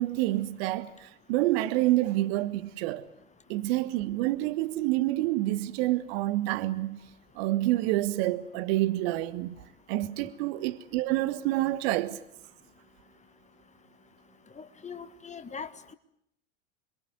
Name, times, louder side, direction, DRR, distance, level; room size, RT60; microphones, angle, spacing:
voice 1, 0.0-3.1 3.5-7.0 7.3-9.5 9.9-12.2, right 16 dB, 55° right, 1.5 m, -28 dB
voice 2, 14.6-15.9, left 6 dB, 20° left, 1.5 m, -41 dB
27.5 x 22.5 x 9.3 m
figure-of-eight pair, 80°, 37 cm